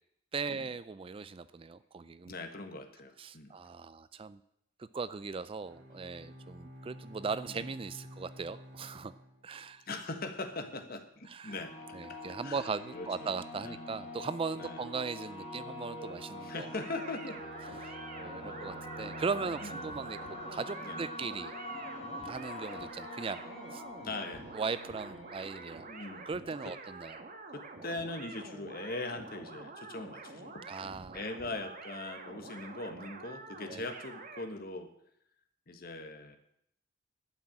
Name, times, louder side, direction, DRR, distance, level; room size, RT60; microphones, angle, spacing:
voice 1, 0.3-2.3 3.2-4.4 4.8-9.1 9.4-9.8 11.3-11.6 11.9-16.7 17.8-17.9 18.2-20.2 20.5-21.5 22.2-23.4 23.7-23.8 24.5-25.9 26.3-27.2 30.7-31.2 33.7-33.8, right 4 dB, 25° right, 15 dB, 0.4 m, -38 dB
voice 2, 2.3-3.5 7.5-7.7 9.9-11.7 12.1-13.3 13.6-13.8 14.6-14.9 16.4-17.4 17.8-18.7 19.5-19.9 20.8-21.0 24.0-24.5 25.9-26.3 26.6-26.7 27.5-30.6 31.1-34.9 35.7-36.4, left 2 dB, 50° left, 7 dB, 1.4 m, -41 dB
Bowed string instrument, 5.6-10.0, equal, 70° right, 2.3 m, -51 dB
sound 1, 11.5-26.8, left 1 dB, 35° left, 2.5 m, -45 dB
sound 2, 16.6-34.5, right 3 dB, 45° right, 1.4 m, -48 dB
11.5 x 6.0 x 8.8 m, 0.74 s
head